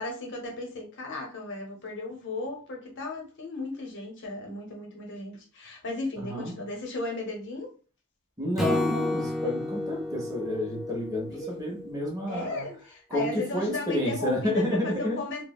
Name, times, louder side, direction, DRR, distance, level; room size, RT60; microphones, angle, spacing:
voice 1, 0.0-7.7 11.3-11.5 12.3-15.4, left 2 dB, 60° left, 1 dB, 0.8 m, -36 dB
voice 2, 6.2-6.5 8.4-12.6 13.1-15.2, left 1 dB, 15° right, -2 dB, 0.8 m, -30 dB
Acoustic guitar / Strum, 8.6-11.9, left 1 dB, ahead, 0.4 m, -31 dB
3.2 x 2.0 x 2.3 m, 0.37 s
head